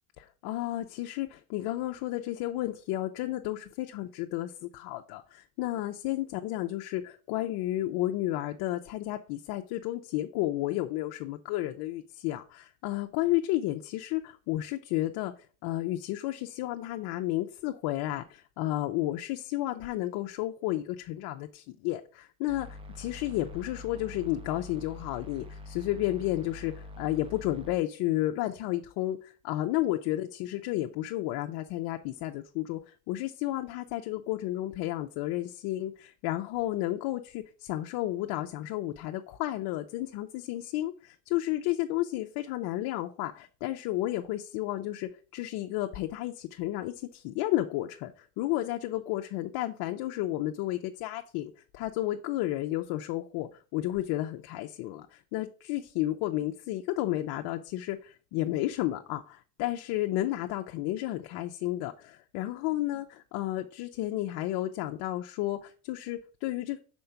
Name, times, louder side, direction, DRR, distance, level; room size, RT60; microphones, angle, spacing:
voice 1, 0.2-15.3 15.6-63.0 63.3-66.8, left 15 dB, 55° left, 5 dB, 0.6 m, -32 dB
sound 1, 22.5-27.8, left 2 dB, 15° right, 0.4 m, -45 dB
5.3 x 4.4 x 5.7 m, 0.39 s
cardioid pair, 140°, 44 cm